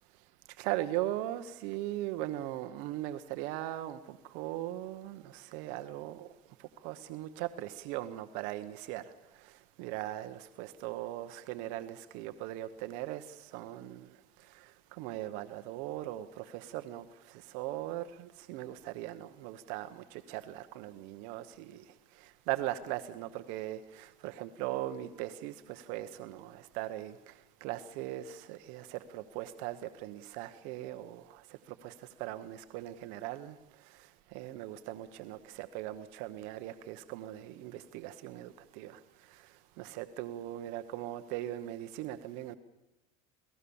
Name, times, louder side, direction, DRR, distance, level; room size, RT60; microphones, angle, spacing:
voice 1, 0.6-6.3 6.6-9.0 9.4-14.1 14.5-21.8 22.2-27.3 27.6-33.5 33.9-39.0 39.3-39.4 39.8-42.6, right 14 dB, 55° right, 1.0 m, -39 dB
27.5 x 18.5 x 7.0 m
cardioid pair, 175°, 16 cm